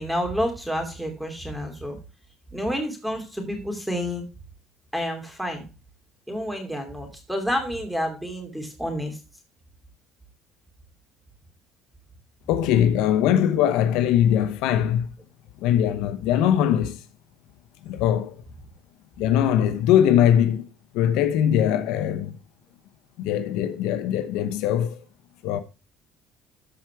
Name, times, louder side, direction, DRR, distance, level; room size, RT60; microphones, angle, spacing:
voice 1, 0.0-2.0 2.5-4.3 4.9-5.6 6.3-9.2, equal, ahead, 2.8 m, -29 dB
voice 2, 12.5-15.1 15.6-17.0 17.8-18.4 19.2-20.6 20.9-22.4 23.2-25.0 25.4-25.6, left 10 dB, 80° left, 0.9 m, -21 dB
13.5 x 4.8 x 4.6 m
cardioid pair, 140°, 0 cm